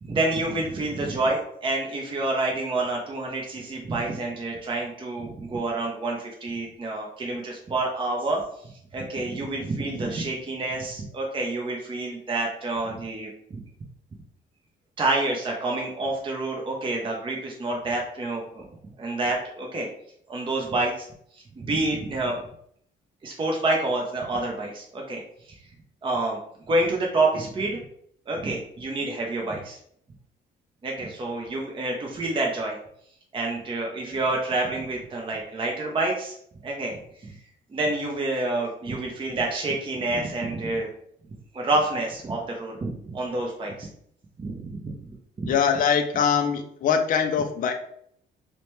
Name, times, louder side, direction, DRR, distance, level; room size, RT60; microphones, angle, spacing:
voice 1, 0.0-13.6 15.0-18.7 19.0-19.9 20.3-21.1 21.6-22.4 23.2-25.2 26.0-26.4 26.7-27.8 28.3-29.8 30.8-32.8 33.3-36.4 36.6-37.4 37.7-40.9 41.5-43.9 44.4-45.5, right 2 dB, 25° right, 0 dB, 0.5 m, -28 dB
voice 2, 45.5-47.7, left 7 dB, 45° left, 6 dB, 0.4 m, -22 dB
2.8 x 2.1 x 3.0 m, 0.68 s
cardioid pair, 90°, 20 cm